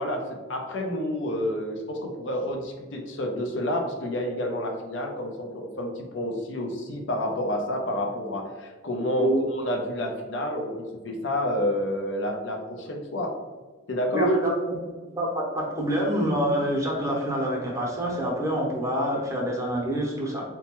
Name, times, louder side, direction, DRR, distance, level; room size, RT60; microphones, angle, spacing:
voice 1, 0.0-13.3 13.9-14.3, left 1 dB, 65° left, 2 dB, 0.6 m, -29 dB
voice 2, 14.1-14.7 15.2-20.4, right 1 dB, 15° right, -3 dB, 0.8 m, -26 dB
4.2 x 2.2 x 3.0 m, 1.3 s
head